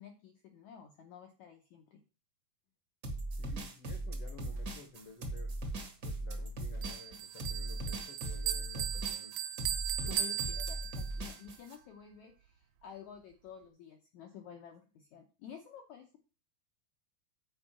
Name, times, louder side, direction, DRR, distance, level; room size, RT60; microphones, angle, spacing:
voice 1, 0.0-2.0 10.0-16.2, left 8 dB, 90° left, 4 dB, 1.6 m, -51 dB
sound 1, 3.0-11.8, right 1 dB, 60° right, 1.0 m, -39 dB
voice 2, 3.4-5.6 6.0-9.4 10.0-10.2 10.5-10.7, left 4 dB, 70° left, 5 dB, 1.3 m, -54 dB
Bell, 6.8-11.3, right 11 dB, 75° right, 2.4 m, -37 dB
8.4 x 4.6 x 7.4 m, 0.35 s
omnidirectional pair, 4.7 m